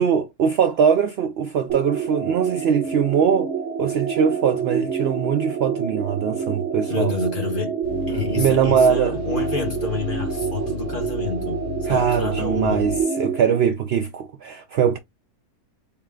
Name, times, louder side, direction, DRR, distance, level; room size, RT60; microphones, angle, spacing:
voice 1, 0.0-3.5 3.8-7.1 8.4-9.2 11.9-15.0, right 7 dB, 75° right, 0.5 m, -21 dB
sound 1, 1.7-13.6, right 6 dB, 50° right, 1.0 m, -27 dB
voice 2, 6.9-7.7 8.1-12.9, left 5 dB, 40° left, 1.0 m, -29 dB
sound 2, 7.8-13.0, left 12 dB, 70° left, 0.6 m, -34 dB
3.9 x 2.0 x 3.6 m
omnidirectional pair, 1.6 m